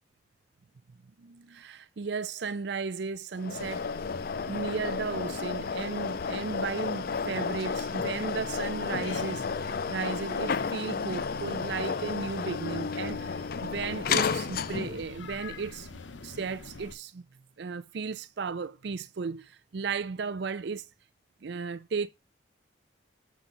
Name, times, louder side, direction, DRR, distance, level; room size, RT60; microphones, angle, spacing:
voice 1, 1.2-3.9 4.5-17.2 17.6-20.8 21.4-22.1, right 5 dB, 60° right, 0.4 m, -35 dB
sound 1, 3.4-15.1, left 5 dB, 50° left, 0.4 m, -32 dB
sound 2, 3.6-17.0, left 3 dB, 70° left, 0.9 m, -45 dB
7.1 x 5.9 x 3.8 m
head